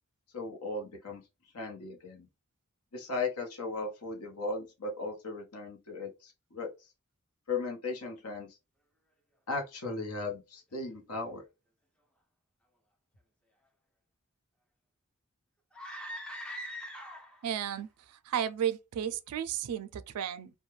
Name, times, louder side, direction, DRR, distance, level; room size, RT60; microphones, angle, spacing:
voice 1, 0.3-1.2 1.5-2.3 2.9-6.9 7.5-8.6 9.5-11.4, left 3 dB, 85° left, 0.9 m, -37 dB
sound 1, 15.7-17.5, equal, 5° left, 0.3 m, -41 dB
voice 2, 17.4-20.5, right 9 dB, 90° right, 0.3 m, -34 dB
2.3 x 2.1 x 3.0 m
head